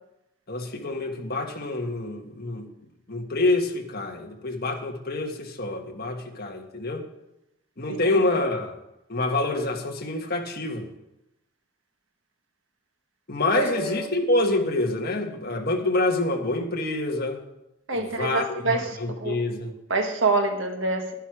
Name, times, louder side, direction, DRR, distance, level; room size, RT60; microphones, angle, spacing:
voice 1, 0.5-2.6 3.1-7.0 7.8-8.8 9.1-10.8 13.3-17.4 17.9-19.7, left 2 dB, 50° left, 2 dB, 1.6 m, -27 dB
voice 2, 7.9-8.2 13.5-14.1 17.9-18.9 19.2-19.4 19.9-21.1, right 3 dB, 70° right, 4 dB, 1.5 m, -26 dB
11.5 x 10.5 x 4.9 m, 0.89 s
head